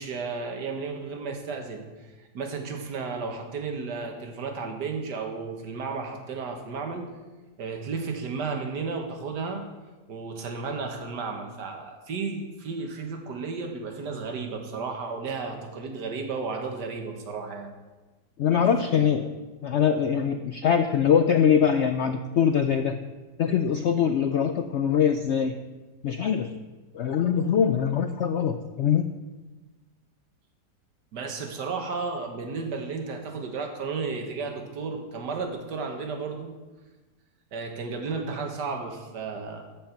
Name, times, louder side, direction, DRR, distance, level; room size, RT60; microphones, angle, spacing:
voice 1, 0.0-7.1 7.6-9.7 10.1-17.7 18.5-19.1 31.1-36.5 37.5-39.6, right 4 dB, 85° right, 4 dB, 1.9 m, -33 dB
voice 2, 18.4-19.3 19.6-23.0 23.4-25.5 26.0-26.5 26.9-29.0, left 8 dB, 75° left, 8 dB, 0.6 m, -23 dB
14.0 x 5.4 x 5.8 m, 1.2 s
omnidirectional pair, 1.8 m